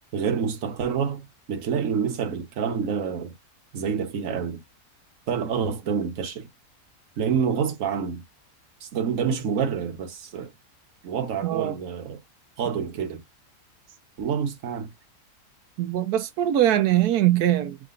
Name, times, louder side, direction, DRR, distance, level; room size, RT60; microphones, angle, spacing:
voice 1, 0.1-3.3 3.7-4.6 5.3-6.5 7.2-8.2 8.8-10.5 11.0-12.2 12.6-13.2 14.2-14.9, right 7 dB, 60° right, 1.3 m, -27 dB
voice 2, 11.4-11.8 15.8-17.8, right 12 dB, 85° right, 1.2 m, -22 dB
3.7 x 2.7 x 3.7 m
omnidirectional pair, 1.6 m